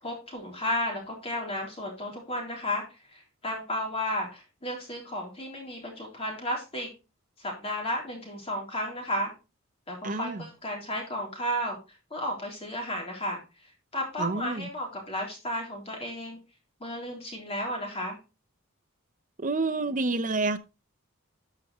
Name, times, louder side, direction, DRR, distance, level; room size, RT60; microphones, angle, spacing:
voice 1, 0.0-6.9 7.4-9.3 9.9-11.8 12.1-16.4 16.8-18.2, left 1 dB, 30° left, 3.6 m, -33 dB
voice 2, 10.0-10.4 14.2-14.6 19.4-20.6, right 3 dB, 40° right, 0.8 m, -28 dB
12.5 x 6.0 x 3.1 m
head